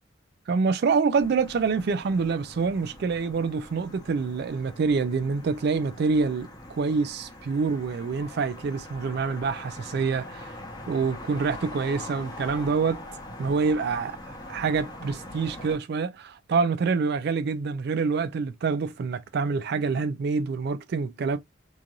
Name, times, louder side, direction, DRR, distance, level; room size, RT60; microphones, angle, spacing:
voice 1, 0.5-10.5 10.9-13.0 13.4-21.4, right 5 dB, 55° right, 0.3 m, -26 dB
sound 1, 1.2-15.8, left 1 dB, 20° left, 0.8 m, -43 dB
3.1 x 2.5 x 2.3 m
head